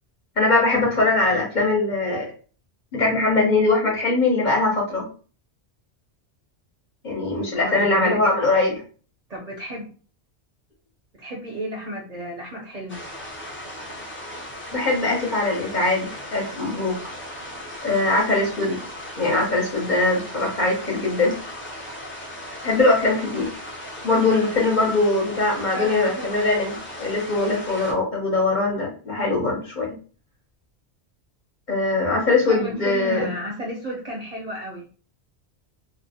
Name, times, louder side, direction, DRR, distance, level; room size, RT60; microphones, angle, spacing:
voice 1, 0.4-2.3 2.9-5.1 7.0-8.7 14.7-16.9 17.8-18.8 19.2-21.4 22.6-23.5 24.0-30.0 31.7-33.3, left 2 dB, 50° left, -1 dB, 0.7 m, -21 dB
voice 2, 7.5-8.3 9.3-9.9 11.1-13.0 25.7-26.3 32.1-34.9, equal, 45° right, -2 dB, 0.6 m, -33 dB
sound 1, 12.9-27.9, left 1 dB, 15° left, 0.4 m, -37 dB
2.4 x 2.0 x 2.7 m, 0.39 s
omnidirectional pair, 1.1 m